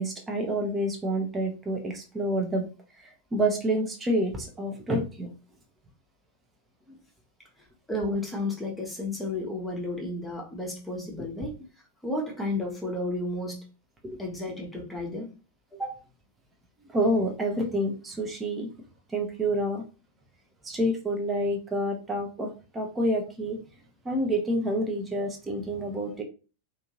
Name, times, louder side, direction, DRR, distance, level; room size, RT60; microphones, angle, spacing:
voice 1, 0.0-2.7 3.0-5.3 6.9-7.0 11.2-11.3 14.0-14.2 16.9-18.7 19.1-19.8 20.6-23.6 24.0-26.2, right 1 dB, 15° right, 2 dB, 0.7 m, -28 dB
voice 2, 7.9-11.5 12.0-13.6 14.2-15.3 15.8-16.0, left 2 dB, 5° left, -2 dB, 1.0 m, -32 dB
2.7 x 2.6 x 2.8 m, 0.34 s
figure-of-eight pair, 90°, 0 cm